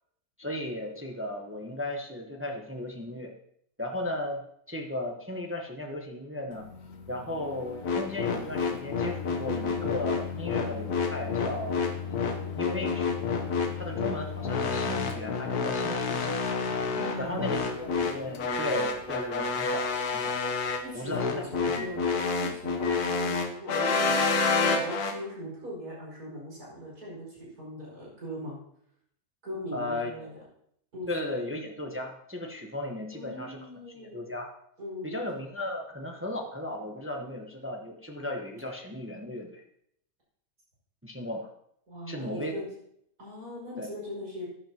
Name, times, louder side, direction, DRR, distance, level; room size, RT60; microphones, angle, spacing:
voice 1, 0.4-3.3 3.8-6.6 7.1-11.8 12.6-13.1 13.8-16.4 17.2-19.9 20.1-20.3 20.9-21.9 29.7-30.4 31.1-33.7 33.9-34.5 35.0-39.6 41.0-41.5 42.1-42.5 43.8-43.9, left 1 dB, 10° right, 1 dB, 0.9 m, -36 dB
Microwave oven, 6.5-23.0, left 6 dB, 60° left, 1.5 m, -40 dB
sound 1, 7.8-25.2, left 4 dB, 80° left, 1.5 m, -28 dB
voice 2, 16.9-17.5 20.8-28.6 29.4-30.3 30.9-31.1 33.1-34.2 34.8-35.2 41.9-42.6 43.2-44.4, equal, 75° right, -6 dB, 6.2 m, -40 dB
15.0 x 10.0 x 2.9 m, 0.71 s
omnidirectional pair, 1.6 m